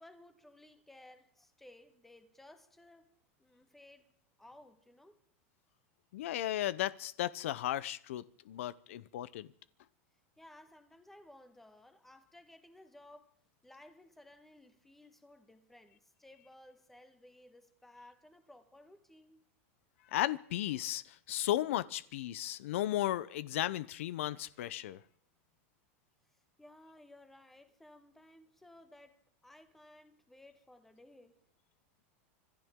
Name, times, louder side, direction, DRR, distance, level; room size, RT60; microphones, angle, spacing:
voice 1, 0.0-3.1 3.4-4.1 4.4-5.2 10.4-13.4 13.6-19.5 26.3-31.4, left 1 dB, 5° left, 1.3 m, -58 dB
voice 2, 6.1-9.5 20.1-25.0, left 13 dB, 80° left, 0.6 m, -35 dB
26.0 x 14.0 x 3.7 m
supercardioid pair, 165°, 7 cm